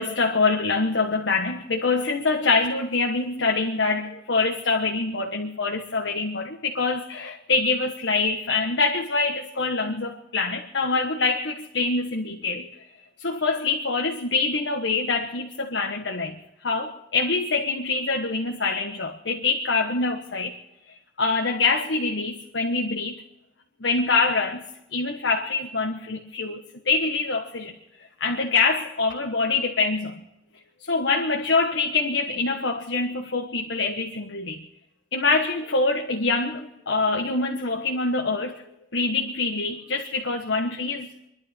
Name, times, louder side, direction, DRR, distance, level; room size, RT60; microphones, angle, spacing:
voice 1, 0.0-12.7 13.2-16.3 16.6-20.5 21.2-23.2 23.8-24.6 24.9-26.6 26.8-27.7 28.2-30.1 30.9-34.6 35.1-38.6 38.9-41.1, left 3 dB, 85° left, 1.4 m, -25 dB
28.5 x 11.5 x 4.4 m
head